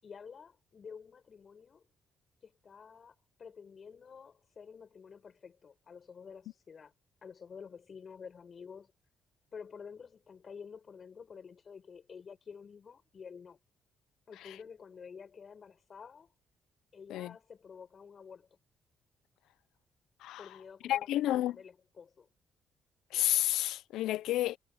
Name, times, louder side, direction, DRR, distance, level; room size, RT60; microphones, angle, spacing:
voice 1, 0.0-1.8 2.4-6.9 7.2-8.9 9.5-13.6 14.3-16.3 16.9-18.5 20.4-22.3, left 6 dB, 45° left, 6.7 m, -50 dB
voice 2, 20.8-21.6 23.1-24.6, left 14 dB, 85° left, 0.6 m, -30 dB
cardioid pair, 90°, 0 cm